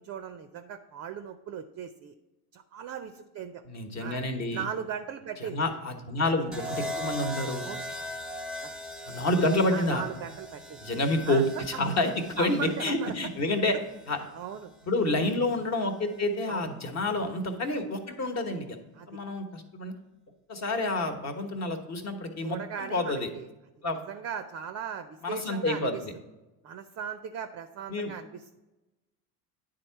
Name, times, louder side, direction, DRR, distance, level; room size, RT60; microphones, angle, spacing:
voice 1, 0.0-2.1 2.5-3.6 4.0-4.2 4.5-5.8 6.2-6.3 7.6-7.8 8.6-8.7 9.7-10.8 11.3-11.9 12.4-13.3 14.2-14.7 16.5-16.7 18.9-19.2 22.4-23.5 24.1-26.0 26.6-28.4, right 7 dB, 35° right, 8 dB, 0.5 m, -38 dB
voice 2, 3.7-4.6 5.4-7.6 9.1-10.0 10.8-13.7 14.1-14.2 14.9-18.8 19.1-19.9 20.5-23.3 23.8-24.0 25.2-26.1 27.9-28.1, left 2 dB, 35° left, 5 dB, 1.1 m, -28 dB
sound 1, 6.5-14.6 15.9-16.2, left 1 dB, ahead, 0.8 m, -40 dB
9.4 x 3.8 x 4.5 m, 1.1 s
supercardioid pair, 85°, 47 cm